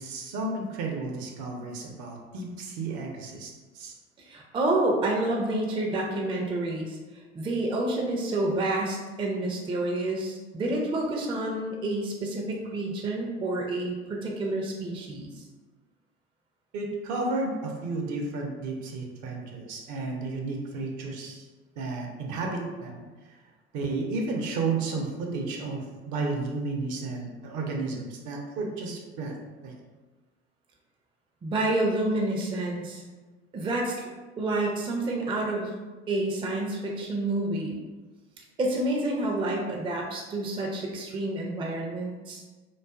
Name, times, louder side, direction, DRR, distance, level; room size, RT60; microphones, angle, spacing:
voice 1, 0.0-3.9 16.7-21.5 21.8-23.0 23.7-29.4 29.6-29.7, right 3 dB, 60° right, 0 dB, 0.6 m, -32 dB
voice 2, 4.2-7.0 7.3-15.4 31.4-33.0 33.5-34.0 34.4-35.7 36.1-37.8 38.6-42.4, right 2 dB, 15° right, -1 dB, 0.4 m, -29 dB
2.4 x 2.3 x 2.3 m, 1.3 s
hypercardioid pair, 65°, 33 cm